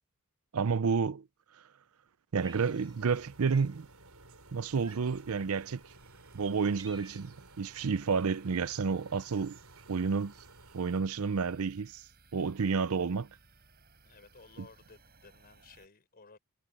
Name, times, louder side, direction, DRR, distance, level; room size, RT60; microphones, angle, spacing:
voice 1, 0.5-1.2 2.3-3.9 4.5-5.8 6.3-9.6 9.9-10.3 10.7-12.0 12.3-13.3, right 5 dB, 70° right, 0.6 m, -30 dB
Cat, 2.4-3.2 3.5-3.8 4.8-5.3 6.0-6.1 6.5-7.5, right 3 dB, 20° right, 2.1 m, -53 dB
sound 1, 2.4-11.0, right 4 dB, 85° right, 7.4 m, -55 dB
sound 2, 5.9-15.9, right 3 dB, 45° right, 5.2 m, -62 dB
voice 2, 14.0-16.4, left 4 dB, 45° left, 4.2 m, -56 dB
head